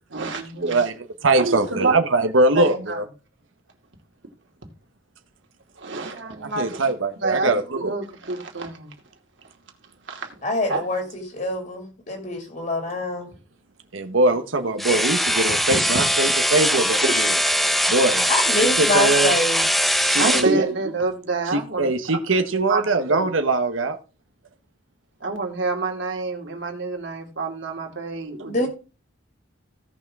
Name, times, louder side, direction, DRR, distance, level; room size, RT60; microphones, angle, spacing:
voice 1, 0.1-0.9 1.3-2.0 2.5-3.0 5.8-6.9 7.2-8.9 10.1-10.3 10.7-10.9 16.0-16.3 17.0-17.1 20.2-22.2 22.7-22.8 23.1-23.3 25.2-28.6, right 3 dB, 65° right, 2.5 m, -27 dB
voice 2, 0.6-3.0 6.4-7.9 13.9-17.3 17.9-18.3 18.8-19.3 20.1-20.5 21.5-24.0, right 2 dB, 85° right, 1.1 m, -22 dB
voice 3, 10.4-13.3 18.3-19.6 28.5-28.7, left 1 dB, 45° left, 2.4 m, -25 dB
sound 1, 14.8-20.5, equal, ahead, 0.6 m, -21 dB
16.5 x 6.1 x 3.6 m
head